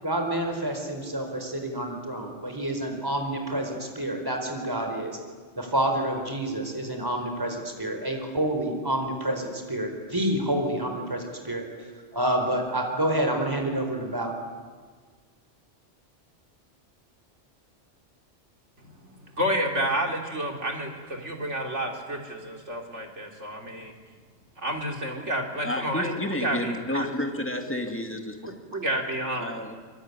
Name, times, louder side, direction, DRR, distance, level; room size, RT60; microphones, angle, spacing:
voice 1, 0.0-5.2 5.6-11.6 12.1-14.3, right 1 dB, 20° right, 4 dB, 4.5 m, -28 dB
voice 2, 19.0-23.9 24.6-27.1 28.4-29.5, right 1 dB, 75° right, 2 dB, 3.8 m, -30 dB
voice 3, 25.6-28.8 29.4-29.7, left 1 dB, 10° left, 4 dB, 2.6 m, -31 dB
25.5 x 24.0 x 9.8 m, 1.5 s
omnidirectional pair, 1.2 m